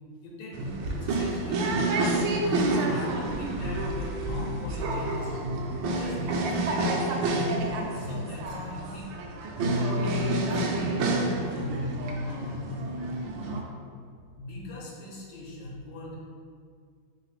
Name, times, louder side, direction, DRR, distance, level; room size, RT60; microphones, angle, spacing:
voice 1, 0.2-1.8 2.2-5.4 5.9-7.7 7.9-9.2 9.7-12.0 12.2-12.7 14.4-16.2, left 1 dB, 80° left, -3 dB, 1.5 m, -41 dB
sound 1, 0.5-13.6, right 2 dB, 80° right, 1.3 m, -28 dB
3.9 x 3.8 x 3.2 m, 2.1 s
omnidirectional pair, 2.1 m